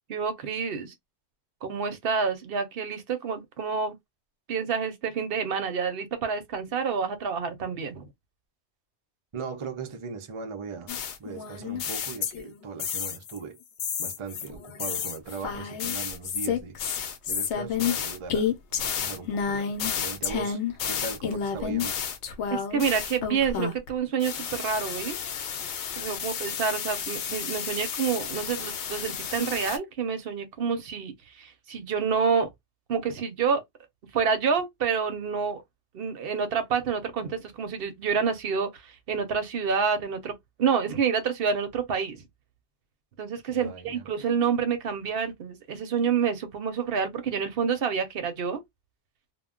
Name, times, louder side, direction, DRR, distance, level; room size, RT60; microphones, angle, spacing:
voice 1, 0.1-0.9 1.6-3.9 4.5-8.1 22.5-25.2 26.0-32.5 32.9-33.6 34.1-35.6 35.9-40.3 40.6-42.2 43.2-48.6, right 6 dB, 60° right, 0.8 m, -28 dB
voice 2, 9.3-10.9 11.2-13.6 14.0-16.8 17.3-20.6 20.9-22.0 43.5-44.1, right 5 dB, 45° right, 0.4 m, -39 dB
sound 1, 10.9-13.4 13.8-23.9 24.2-29.8, left 7 dB, 75° left, 0.9 m, -31 dB
2.2 x 2.1 x 3.6 m
omnidirectional pair, 1.1 m